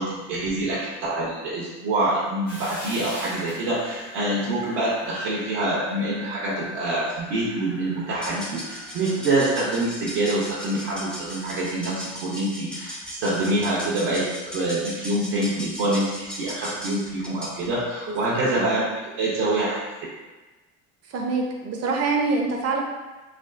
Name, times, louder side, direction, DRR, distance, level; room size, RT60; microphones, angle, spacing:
voice 1, 0.0-14.3 14.5-19.8, right 1 dB, 80° right, -7 dB, 0.8 m, -26 dB
sound 1, 2.5-11.6, equal, 80° left, 1.4 m, -42 dB
sound 2, 8.1-17.7, equal, 5° left, 0.4 m, -38 dB
voice 2, 18.1-18.8 21.1-22.8, right 3 dB, 45° right, 2 dB, 0.6 m, -26 dB
3.4 x 2.2 x 2.4 m, 1.2 s
supercardioid pair, 80°, 36 cm